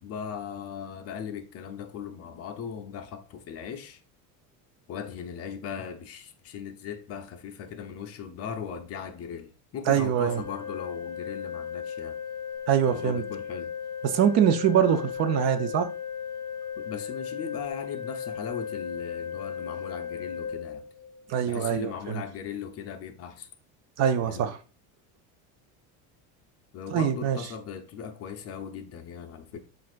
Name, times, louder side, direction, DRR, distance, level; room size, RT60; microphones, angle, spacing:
voice 1, 0.0-4.0 4.9-12.2 12.9-13.7 16.8-20.9 21.5-23.5 24.2-24.5 26.7-29.6, left 7 dB, 35° left, 0.5 m, -38 dB
voice 2, 9.9-10.4 12.7-13.2 14.0-15.9 21.3-22.2 24.0-24.6 26.9-27.4, right 8 dB, 40° right, 0.4 m, -24 dB
Organ, 10.2-21.3, left 7 dB, 15° left, 2.0 m, -36 dB
7.3 x 2.5 x 2.4 m
cardioid pair, 140°, 42 cm